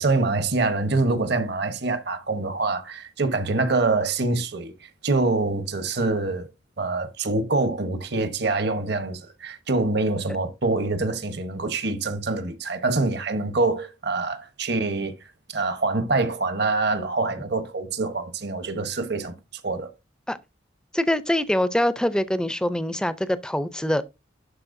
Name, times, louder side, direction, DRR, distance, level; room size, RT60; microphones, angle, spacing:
voice 1, 0.0-4.7 5.0-6.5 6.8-15.1 15.5-19.3 19.6-19.9, right 3 dB, 60° right, 1.0 m, -25 dB
voice 2, 20.9-24.0, left 1 dB, 5° left, 0.4 m, -24 dB
11.5 x 4.3 x 2.6 m
head